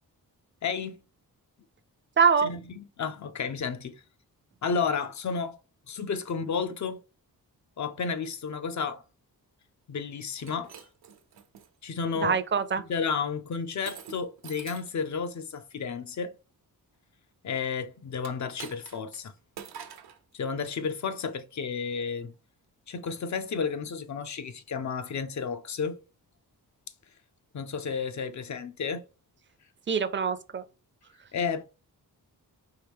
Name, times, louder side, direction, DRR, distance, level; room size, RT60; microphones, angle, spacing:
voice 1, 0.6-1.0 2.4-4.0 4.6-5.6 5.9-7.0 7.8-9.0 9.9-10.7 11.8-12.4 12.9-16.3 17.4-19.3 20.3-22.3 22.9-26.0 27.5-29.0 31.3-31.6, left 5 dB, 50° left, 0.6 m, -32 dB
voice 2, 2.2-2.5 12.1-12.8 29.9-30.6, right 6 dB, 30° right, 0.5 m, -24 dB
Shatter, 10.3-11.7 12.3-12.7 13.9-15.0 18.2-19.2 19.6-20.2, right 7 dB, 85° right, 0.8 m, -45 dB
4.7 x 3.0 x 3.5 m
wide cardioid pair, 130°, 38 cm